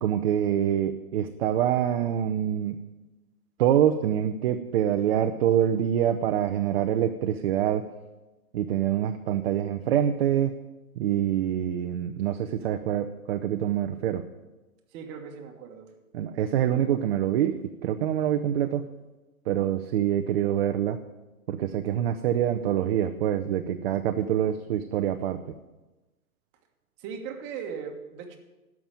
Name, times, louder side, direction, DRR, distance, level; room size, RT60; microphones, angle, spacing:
voice 1, 0.0-2.8 3.6-7.9 8.5-10.6 11.0-14.2 16.1-17.6 17.8-18.8 19.5-21.0 21.5-25.4, right 10 dB, 45° right, 6 dB, 0.7 m, -25 dB
voice 2, 14.9-15.9 27.0-28.4, right 6 dB, 25° right, 2 dB, 1.6 m, -38 dB
12.5 x 6.1 x 9.1 m, 1.1 s
hypercardioid pair, 140°, 43 cm